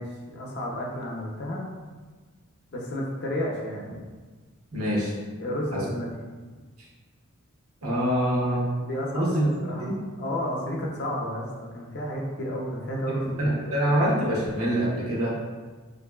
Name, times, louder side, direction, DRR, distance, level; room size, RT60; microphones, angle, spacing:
voice 1, 0.0-1.7 2.7-4.0 5.4-6.1 8.8-13.9, equal, 50° left, -2 dB, 0.5 m, -32 dB
voice 2, 4.7-5.1 5.7-5.8 7.8-8.7 9.1-9.4 9.8-9.9 13.4-15.3, equal, 85° right, -5 dB, 0.9 m, -25 dB
2.9 x 2.5 x 2.3 m, 1.4 s
head